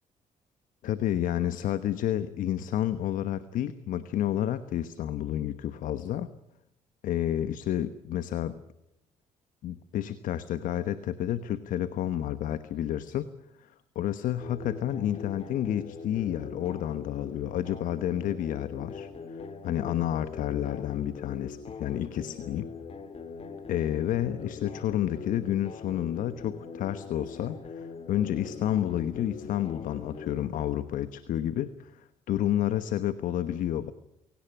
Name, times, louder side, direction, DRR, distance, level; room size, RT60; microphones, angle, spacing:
voice 1, 0.8-6.3 7.0-8.6 9.6-13.3 13.6-22.7 23.7-33.9, left 11 dB, 70° left, 13 dB, 1.1 m, -30 dB
sound 1, 14.4-30.4, left 5 dB, 45° left, 2.9 m, -42 dB
23.0 x 17.5 x 10.0 m, 0.84 s
supercardioid pair, 70°, 14 cm